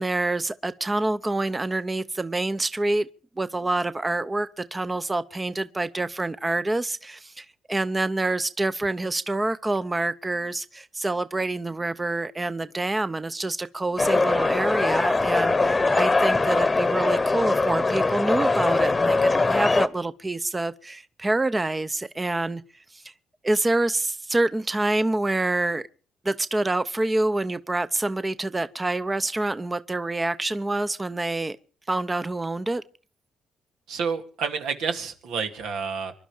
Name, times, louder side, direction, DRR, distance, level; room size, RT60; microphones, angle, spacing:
voice 1, 0.0-3.1 3.4-22.6 22.9-23.1 23.4-25.8 26.2-31.6 31.9-32.8, right 2 dB, 20° right, 0.7 m, -27 dB
sound 1, 14.0-19.9, left 3 dB, 25° left, 1.0 m, -22 dB
voice 2, 33.9-36.1, right 5 dB, 85° right, 2.3 m, -29 dB
25.5 x 11.5 x 5.0 m
cardioid pair, 90°, 0 cm